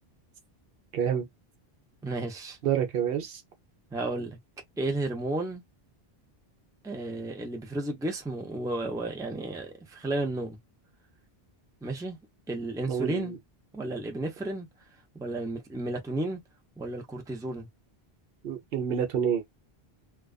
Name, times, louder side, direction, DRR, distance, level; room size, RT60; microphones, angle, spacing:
voice 1, 0.9-1.3 2.6-3.4 12.9-13.4 18.4-19.4, right 8 dB, 70° right, 0.8 m, -28 dB
voice 2, 2.0-2.6 3.9-4.4 4.8-5.6 6.8-10.6 11.8-12.2 12.5-13.4 13.7-14.7 15.1-16.4 16.8-17.7, right 2 dB, 5° right, 0.5 m, -33 dB
2.3 x 2.3 x 2.3 m
omnidirectional pair, 1.0 m